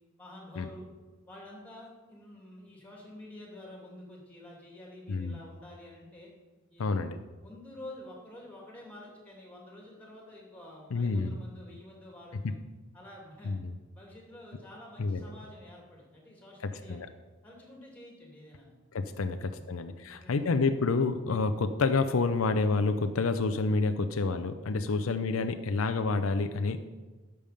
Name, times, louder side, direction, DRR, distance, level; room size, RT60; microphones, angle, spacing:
voice 1, 0.2-0.9 1.3-6.3 6.7-6.9 7.4-12.6 12.9-13.5 13.9-17.0 17.4-18.8 19.6-19.7 20.0-20.5 24.9-25.0, left 1 dB, 10° left, -2 dB, 2.6 m, -49 dB
voice 2, 5.1-5.4 6.8-7.2 10.9-11.4 13.4-13.8 15.0-15.2 16.9-17.1 18.9-26.8, left 3 dB, 80° left, 9 dB, 0.5 m, -28 dB
11.0 x 6.9 x 5.1 m, 1.3 s
head